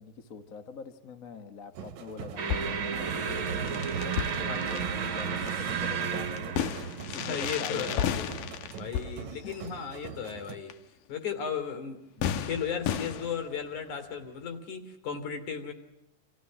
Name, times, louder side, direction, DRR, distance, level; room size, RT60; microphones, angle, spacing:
voice 1, 0.0-8.5 9.4-9.6, left 4 dB, 35° left, 7 dB, 1.4 m, -44 dB
sound 1, 1.7-10.6, right 8 dB, 65° right, 2.2 m, -43 dB
sound 2, 2.4-8.8, right 6 dB, 45° right, 1.9 m, -33 dB
sound 3, 2.5-3.0 3.4-3.5 3.7-5.6 6.4-9.9 10.7-10.8 11.2-11.3 12.2-13.8, left 9 dB, 85° left, 2.8 m, -33 dB
voice 2, 7.2-8.4 8.8-10.7 11.1-15.7, left 7 dB, 65° left, 9 dB, 4.2 m, -35 dB
29.0 x 27.0 x 6.3 m, 0.90 s
omnidirectional pair, 3.7 m